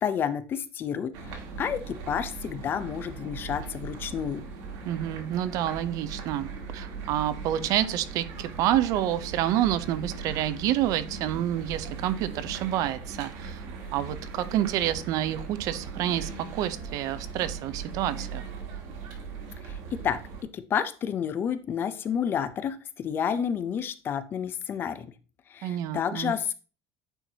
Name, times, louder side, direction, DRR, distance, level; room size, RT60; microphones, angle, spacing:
voice 1, 0.0-4.4 19.6-20.2 20.5-25.1 25.5-26.5, left 8 dB, 30° left, 12 dB, 0.5 m, -30 dB
sound 1, 1.1-20.4, right 5 dB, 65° right, 1.7 m, -39 dB
voice 2, 4.9-6.5 6.7-13.6 13.9-18.4 25.6-26.3, right 12 dB, 50° right, 14 dB, 0.5 m, -28 dB
8.9 x 4.4 x 2.8 m, 0.35 s
cardioid pair, 165°, 8 cm